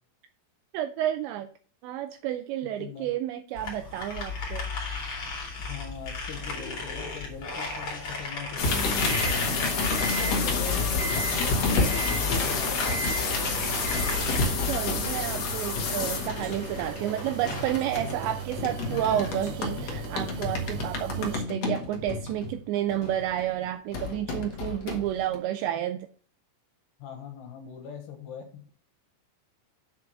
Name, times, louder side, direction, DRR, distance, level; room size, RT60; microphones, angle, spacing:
voice 1, 0.7-1.5 1.8-4.7 14.6-26.1, right 12 dB, 85° right, 9 dB, 2.5 m, -30 dB
voice 2, 2.8-3.1 5.6-13.2 27.0-28.7, left 7 dB, 70° left, 4 dB, 3.2 m, -41 dB
sound 1, 3.5-14.4, left 3 dB, 35° left, 2.7 m, -35 dB
sound 2, 8.6-23.4 23.9-25.4, left 3 dB, 85° left, 1.4 m, -29 dB
sound 3, 13.3-21.4, right 6 dB, 70° right, 2.4 m, -38 dB
8.3 x 4.7 x 6.2 m, 0.43 s
omnidirectional pair, 5.6 m